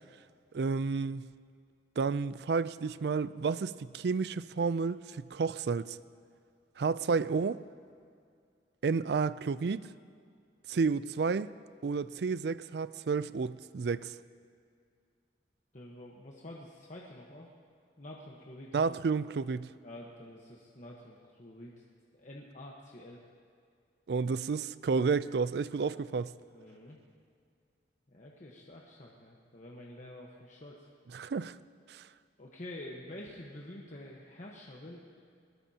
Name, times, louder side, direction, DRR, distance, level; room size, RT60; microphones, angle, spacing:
voice 1, 0.5-1.3 2.0-6.0 6.8-7.6 8.8-9.8 10.7-11.5 11.8-14.1 18.7-19.7 24.1-26.3 31.1-31.6 31.9-32.0, right 4 dB, 65° right, 0.4 m, -31 dB
voice 2, 15.7-17.5 18.0-18.8 19.8-21.7 22.1-23.2 26.5-27.0 28.1-30.9 32.4-35.2, left 1 dB, 45° left, 1.2 m, -48 dB
22.0 x 19.5 x 2.9 m
head